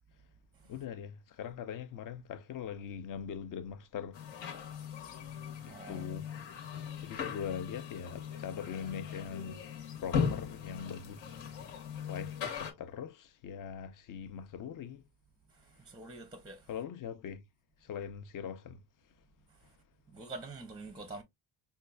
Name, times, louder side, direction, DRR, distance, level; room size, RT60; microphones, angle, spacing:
voice 1, 0.7-4.2 5.6-6.3 7.0-9.6 10.0-11.7 12.1-15.0 16.7-17.4 17.8-18.8, left 7 dB, 45° left, 0.6 m, -42 dB
sound 1, 4.1-12.7, left 7 dB, 75° left, 1.2 m, -39 dB
voice 2, 5.7-6.0 15.8-16.7 20.1-21.2, right 2 dB, 10° right, 0.5 m, -45 dB
5.3 x 2.3 x 2.3 m
cardioid pair, 130°, 45 cm